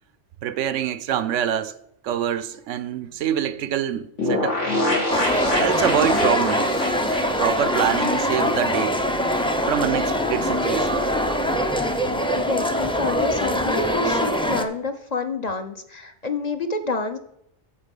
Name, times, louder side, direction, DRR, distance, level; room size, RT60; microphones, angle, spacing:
voice 1, 0.4-1.8 2.0-4.6 5.6-6.7 7.4-9.0 9.7-11.0, right 9 dB, 90° right, 1.0 m, -25 dB
sound 1, 4.2-8.8 9.1-9.2 9.4-9.5, left 1 dB, 90° left, 3.3 m, -26 dB
sound 2, 5.1-14.6, equal, 5° left, 0.5 m, -23 dB
voice 2, 12.3-17.2, left 3 dB, 40° left, 0.8 m, -28 dB
8.9 x 7.3 x 5.3 m
omnidirectional pair, 1.2 m